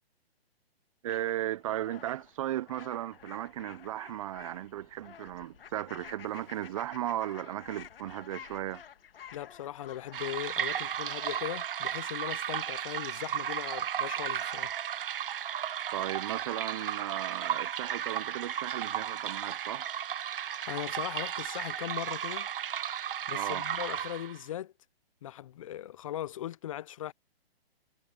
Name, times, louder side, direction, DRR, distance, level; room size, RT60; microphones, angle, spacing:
voice 1, 1.0-8.8 15.9-19.9 23.3-23.7, right 13 dB, 35° right, 0.7 m, -36 dB
sound 1, 1.1-11.5, left 8 dB, 60° left, 1.8 m, -51 dB
voice 2, 9.3-14.7 20.5-22.5 23.3-24.7 25.2-27.1, left 12 dB, 35° left, 0.5 m, -39 dB
sound 2, 10.1-24.5, right 9 dB, 55° right, 1.0 m, -34 dB
hypercardioid pair, 140°, 32 cm